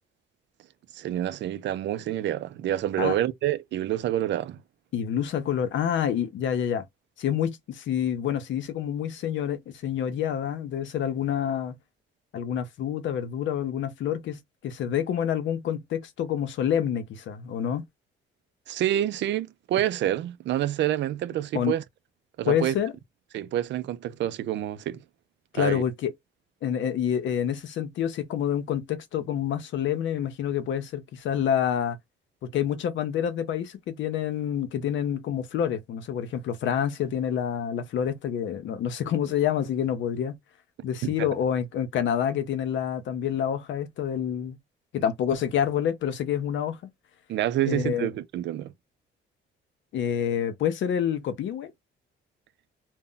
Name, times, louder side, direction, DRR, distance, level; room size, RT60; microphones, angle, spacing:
voice 1, 0.9-4.6 18.7-21.8 22.4-22.8 23.3-25.0 25.5-25.8 41.0-41.3 47.3-48.7, right 12 dB, 65° right, 0.4 m, -27 dB
voice 2, 4.9-6.8 7.2-11.8 12.3-17.8 21.5-21.7 22.5-22.9 25.5-26.1 26.6-32.0 32.5-40.4 40.8-44.6 44.9-46.8 47.7-48.1 49.9-51.7, left 9 dB, 70° left, 0.6 m, -27 dB
2.1 x 2.1 x 3.7 m
cardioid pair, 90°, 20 cm